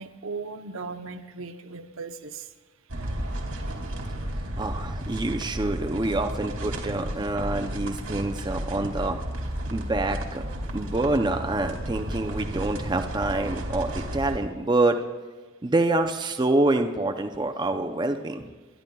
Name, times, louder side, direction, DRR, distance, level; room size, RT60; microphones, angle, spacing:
voice 1, 0.0-2.5 3.9-4.0 4.6-4.7 10.7-10.9, right 4 dB, 70° right, 0.8 m, -38 dB
sound 1, 2.9-14.4, right 1 dB, 85° right, 2.4 m, -33 dB
voice 2, 4.6-9.2 9.7-10.4 10.7-15.0 15.6-18.5, right 2 dB, 20° right, 0.5 m, -26 dB
28.0 x 12.0 x 2.3 m
head